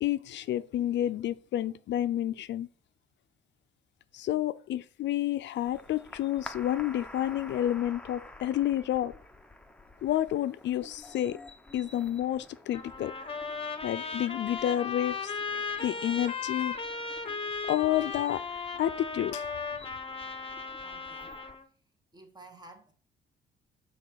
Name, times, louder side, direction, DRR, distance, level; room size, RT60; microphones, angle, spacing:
voice 1, 0.0-2.7 4.1-9.1 10.0-11.4 11.7-13.1 13.8-15.3 15.8-16.8 17.7-18.4 18.8-19.4, left 12 dB, 65° left, 0.4 m, -30 dB
sound 1, 5.7-21.6, left 1 dB, 5° left, 0.8 m, -50 dB
Trumpet, 12.7-21.7, left 5 dB, 25° left, 1.0 m, -36 dB
voice 2, 20.8-21.4 22.1-22.9, right 2 dB, 20° right, 1.4 m, -52 dB
5.3 x 4.1 x 6.1 m
cardioid pair, 90°, 20 cm